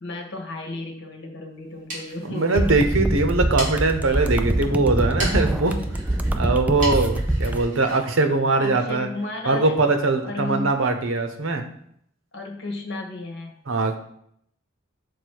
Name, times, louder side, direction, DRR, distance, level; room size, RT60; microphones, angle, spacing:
voice 1, 0.0-2.7 8.6-9.7 10.2-10.7 12.3-13.6, left 2 dB, 60° left, 2 dB, 1.5 m, -33 dB
sound 1, 1.6-9.1, right 1 dB, 40° right, 2.6 m, -38 dB
voice 2, 2.3-5.8 6.3-9.1 9.4-11.6 13.7-14.0, right 3 dB, 90° right, 6 dB, 0.9 m, -21 dB
sound 2, 2.6-7.6, right 1 dB, 10° right, 0.3 m, -24 dB
6.7 x 4.2 x 4.7 m, 0.70 s
head